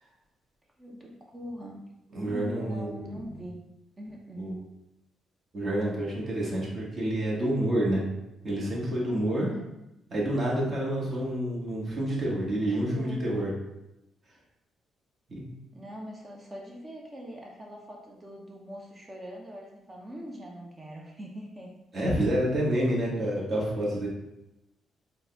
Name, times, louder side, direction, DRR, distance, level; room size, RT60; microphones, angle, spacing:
voice 1, 0.8-1.8 2.3-3.6 4.0-4.6 9.4-9.7 12.7-13.5 15.7-21.7 22.7-22.8, equal, 25° right, -2 dB, 0.8 m, -42 dB
voice 2, 2.1-3.2 4.4-4.6 5.5-8.0 8.4-9.5 10.1-13.5 15.3-15.5 21.9-24.1, right 1 dB, 45° right, -4 dB, 1.5 m, -28 dB
3.8 x 2.3 x 3.8 m, 0.91 s
cardioid pair, 90°, 0 cm